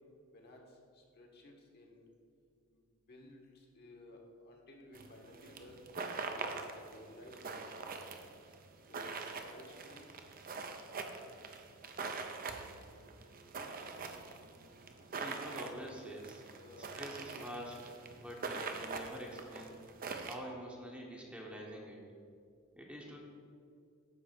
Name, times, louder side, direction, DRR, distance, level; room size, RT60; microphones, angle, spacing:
voice 1, 0.9-2.0 3.1-4.2 4.4-7.7 8.9-10.1 16.5-17.2, left 1 dB, 50° left, 1 dB, 1.3 m, -55 dB
sound 1, 4.9-20.4, right 4 dB, 40° right, 0.6 m, -44 dB
voice 2, 15.2-16.4 16.8-17.8 18.1-19.8 20.2-22.0 22.8-23.2, equal, 5° right, -1 dB, 0.9 m, -46 dB
9.5 x 3.3 x 6.7 m, 2.3 s
head